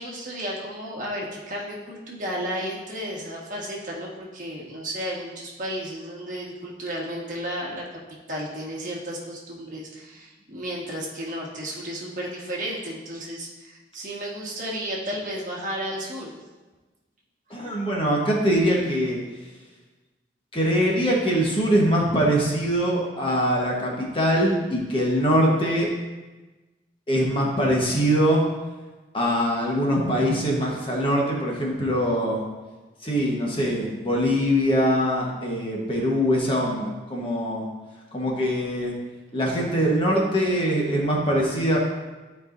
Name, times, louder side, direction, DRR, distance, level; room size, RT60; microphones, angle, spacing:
voice 1, 0.0-7.8 8.3-16.3, equal, 45° right, -3 dB, 1.5 m, -33 dB
voice 2, 17.5-19.2 20.5-25.9 27.1-28.5 29.1-32.4 33.0-37.6 38.1-38.9 39.3-41.8, equal, 30° left, -3 dB, 1.3 m, -23 dB
12.5 x 4.7 x 2.7 m, 1.2 s
head